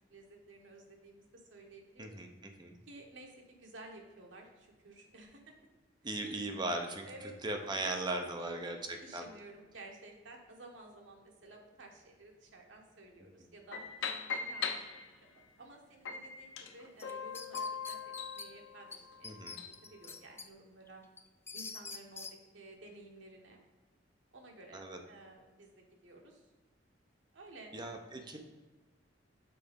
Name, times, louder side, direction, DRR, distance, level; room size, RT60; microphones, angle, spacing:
voice 1, 0.1-2.2 2.9-5.5 7.0-7.3 7.6-13.8 14.3-14.8 15.3-19.4 19.9-21.0 21.5-23.6 24.3-26.5 27.3-27.7, right 2 dB, 75° right, 1 dB, 1.3 m, -53 dB
voice 2, 6.0-7.1 7.4-8.8 9.1-9.2 19.2-19.6 24.7-25.0 27.7-28.4, right 2 dB, 25° right, 4 dB, 0.6 m, -37 dB
sound 1, 13.7-15.4 16.1-19.8, left 6 dB, 75° left, 0.6 m, -41 dB
sound 2, 17.0-18.5 18.9-19.0 19.2-20.5 20.9-22.3, left 4 dB, 10° left, 0.3 m, -45 dB
6.8 x 4.1 x 5.2 m, 1.2 s
head